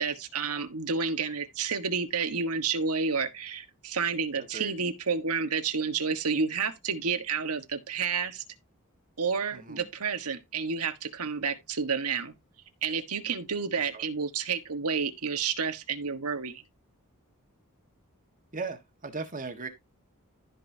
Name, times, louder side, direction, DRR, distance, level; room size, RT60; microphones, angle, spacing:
voice 1, 0.0-8.4 9.2-12.3 12.8-16.6, right 5 dB, 80° right, 1.4 m, -30 dB
voice 2, 4.4-4.7 9.5-9.9 13.8-14.1 18.5-19.7, right 4 dB, 35° right, 1.6 m, -38 dB
15.5 x 5.4 x 2.8 m
head